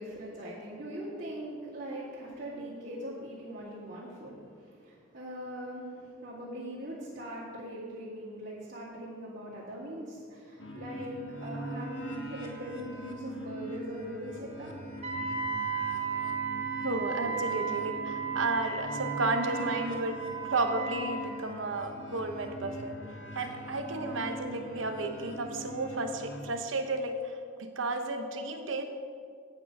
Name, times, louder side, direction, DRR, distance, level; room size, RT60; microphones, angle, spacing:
voice 1, 0.0-14.7, equal, 50° right, -11 dB, 2.4 m, -41 dB
sound 1, 10.6-26.4, right 1 dB, 80° left, 1.4 m, -42 dB
Wind instrument woodwind instrument, 15.0-21.3, right 6 dB, 35° right, 1.1 m, -35 dB
voice 2, 16.8-20.2 20.5-23.0 23.3-28.8, right 2 dB, 80° right, 6 dB, 1.0 m, -33 dB
9.0 x 8.2 x 5.4 m, 2.2 s
head